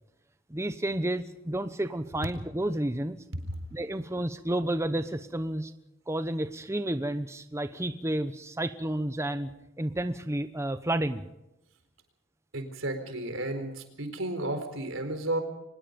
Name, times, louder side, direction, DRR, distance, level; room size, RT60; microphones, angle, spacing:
voice 1, 0.5-3.2 3.7-5.7 6.1-9.5 9.8-11.2, right 1 dB, 15° right, 10 dB, 0.9 m, -31 dB
voice 2, 12.5-15.4, right 1 dB, 80° right, 8 dB, 4.3 m, -33 dB
24.5 x 21.0 x 5.3 m, 0.88 s
head